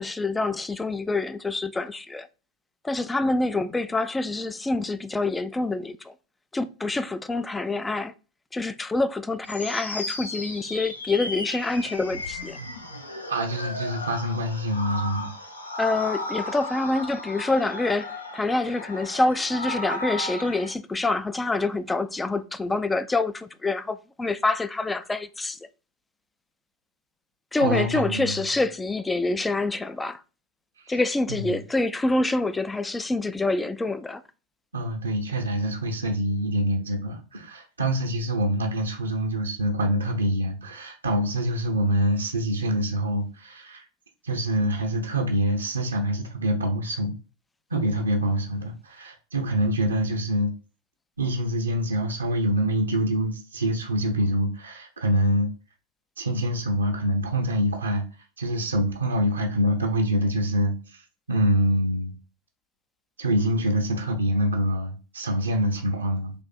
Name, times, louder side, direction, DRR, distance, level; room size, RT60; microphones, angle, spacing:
voice 1, 0.0-2.3 2.8-6.1 6.5-8.1 8.5-12.6 15.8-25.6 27.5-30.2 30.9-34.2, left 2 dB, 10° left, 0.3 m, -26 dB
sound 1, 9.5-20.7, left 2 dB, 80° left, 0.6 m, -35 dB
voice 2, 13.3-15.3 27.6-28.3 31.3-31.6 34.7-43.8 44.2-47.1 47.7-50.5 51.2-55.5 56.2-58.0 58.4-61.0 61.3-62.1 63.2-66.3, right 1 dB, 75° right, 0.7 m, -25 dB
3.5 x 2.7 x 4.1 m
figure-of-eight pair, 90°, 0 cm